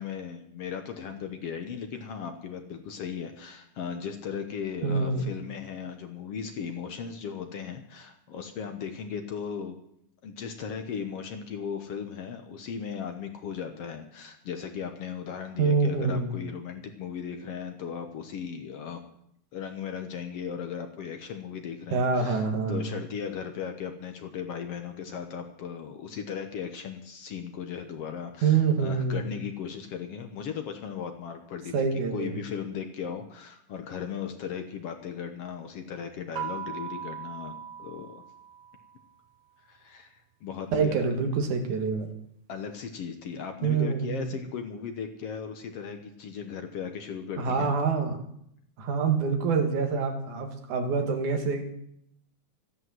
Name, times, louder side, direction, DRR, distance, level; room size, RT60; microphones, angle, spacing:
voice 1, 0.0-9.8 10.2-19.0 19.5-22.4 22.7-38.2 39.7-41.1 42.5-47.7, left 7 dB, 60° left, 6 dB, 1.9 m, -37 dB
voice 2, 4.8-5.3 15.6-16.4 21.9-23.0 28.4-29.3 31.7-32.4 40.7-42.1 43.6-44.4 47.4-48.2 48.8-51.7, right 5 dB, 90° right, 5 dB, 3.2 m, -26 dB
sound 1, 36.4-39.1, right 8 dB, 70° right, 2.0 m, -39 dB
13.5 x 11.0 x 7.6 m, 0.73 s
omnidirectional pair, 3.4 m